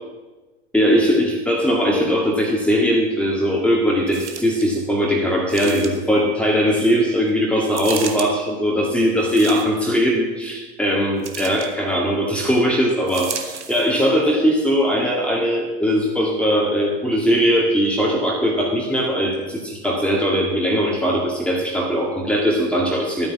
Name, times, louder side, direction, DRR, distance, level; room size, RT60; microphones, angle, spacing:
voice 1, 0.7-23.3, equal, 5° left, -1 dB, 2.1 m, -20 dB
sound 1, 4.1-4.7 5.5-6.2 7.7-8.3 9.2-9.9 11.2-11.7 13.1-13.9 14.6-14.7, right 6 dB, 75° right, 1.4 m, -33 dB
12.5 x 9.4 x 7.2 m, 1.2 s
figure-of-eight pair, 80°, 35 cm